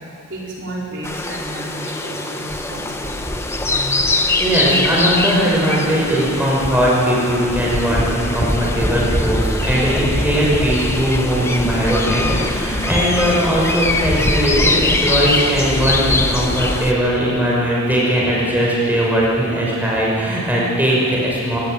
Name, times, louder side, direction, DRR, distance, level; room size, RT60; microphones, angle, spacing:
voice 1, 0.3-4.4, equal, 55° right, -4 dB, 4.6 m, -32 dB
sound 1, 1.0-16.9, left 2 dB, 10° left, 1.1 m, -21 dB
voice 2, 4.4-21.6, equal, 10° right, -5 dB, 5.7 m, -19 dB
27.5 x 16.0 x 9.4 m, 2.6 s
head